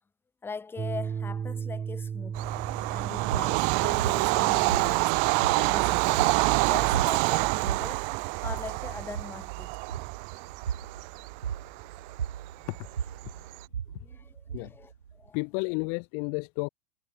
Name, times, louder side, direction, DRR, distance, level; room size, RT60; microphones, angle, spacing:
voice 1, 0.4-2.5 2.9-5.1 5.5-6.3 6.6-8.1 8.4-9.8 13.4-13.5 14.0-15.4, left 4 dB, 15° left, 1.5 m, -41 dB
sound 1, 0.8-7.8, right 7 dB, 25° right, 3.5 m, -38 dB
Bird vocalization bird call bird song / Train, 2.3-13.5, right 40 dB or more, 50° right, 1.7 m, -27 dB
sound 2, 4.0-15.3, right 8 dB, 80° right, 2.0 m, -37 dB
voice 2, 15.3-16.7, left 40 dB or more, 50° left, 4.8 m, -31 dB
figure-of-eight pair, 90°, 16 cm